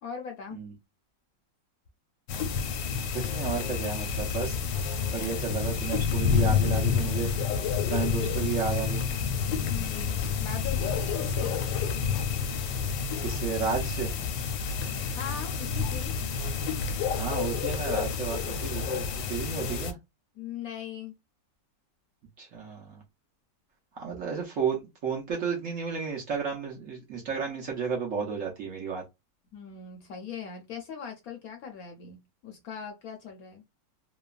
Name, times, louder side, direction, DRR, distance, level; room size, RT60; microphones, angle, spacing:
voice 1, 0.0-0.6 9.7-11.6 15.1-16.2 20.3-21.2 29.5-33.7, left 7 dB, 70° left, 0.9 m, -40 dB
sound 1, 2.3-19.9, left 6 dB, 85° left, 1.3 m, -29 dB
voice 2, 3.1-4.6 5.1-7.3 7.9-9.1 13.2-14.1 17.2-20.0 22.4-23.0 24.0-29.0, right 6 dB, 60° right, 0.9 m, -32 dB
3.0 x 2.2 x 2.3 m
omnidirectional pair, 1.9 m